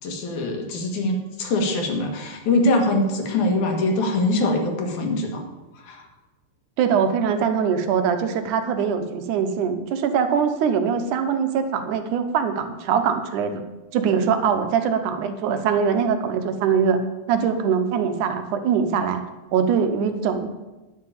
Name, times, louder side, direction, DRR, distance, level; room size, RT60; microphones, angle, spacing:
voice 1, 0.0-5.4 5.8-6.0, left 2 dB, 75° left, 2 dB, 3.1 m, -23 dB
voice 2, 6.8-13.6 13.9-17.0 17.3-19.2 19.5-20.5, right 7 dB, 85° right, 8 dB, 2.4 m, -22 dB
11.0 x 5.7 x 8.3 m, 1.1 s
omnidirectional pair, 3.5 m